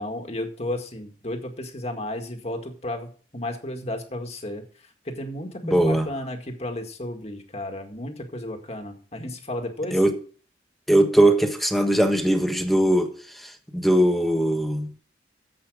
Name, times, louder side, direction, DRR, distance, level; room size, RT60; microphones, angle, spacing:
voice 1, 0.0-4.6 5.1-10.0, left 1 dB, 35° left, 1.9 m, -33 dB
voice 2, 5.6-6.1 9.9-10.2 10.9-14.9, right 1 dB, ahead, 1.3 m, -20 dB
10.5 x 8.1 x 4.9 m
head